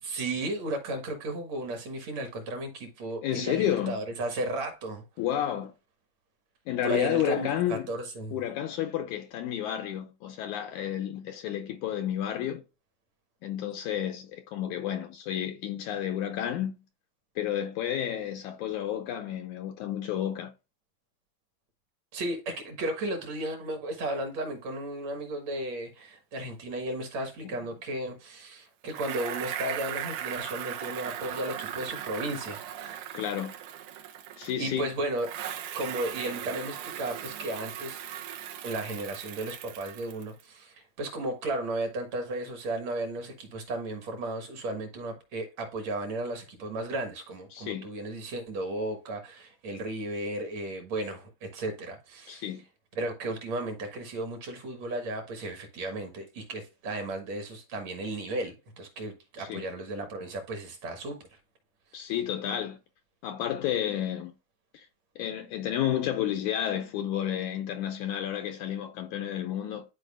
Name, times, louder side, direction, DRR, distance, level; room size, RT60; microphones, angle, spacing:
voice 1, 0.0-5.0 6.8-8.4 22.1-33.1 34.6-35.3 35.7-38.0 38.6-52.4 53.0-61.2, right 1 dB, 55° right, 2.4 m, -34 dB
voice 2, 3.2-4.0 5.2-5.7 6.7-7.9 8.3-12.6 13.4-16.7 17.4-20.5 33.1-33.5 34.4-34.9 47.5-47.9 52.3-52.6 59.4-59.6 61.9-62.8 63.2-64.3 64.7-64.9 65.2-69.8, left 10 dB, 80° left, 1.9 m, -31 dB
Bicycle, 28.9-34.8 35.2-40.4, right 10 dB, 75° right, 2.2 m, -38 dB
12.0 x 4.7 x 2.4 m
omnidirectional pair, 4.0 m